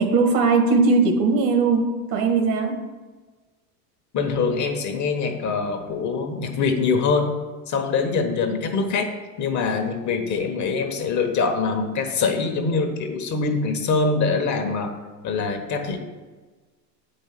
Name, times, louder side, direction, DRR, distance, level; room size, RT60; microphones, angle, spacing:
voice 1, 0.0-2.8, right 4 dB, 65° right, 5 dB, 1.8 m, -19 dB
voice 2, 4.1-7.3 7.7-9.1 9.4-14.9 15.2-16.0, left 4 dB, 35° left, 4 dB, 1.3 m, -24 dB
7.6 x 5.5 x 7.6 m, 1.3 s
supercardioid pair, 125°, 49 cm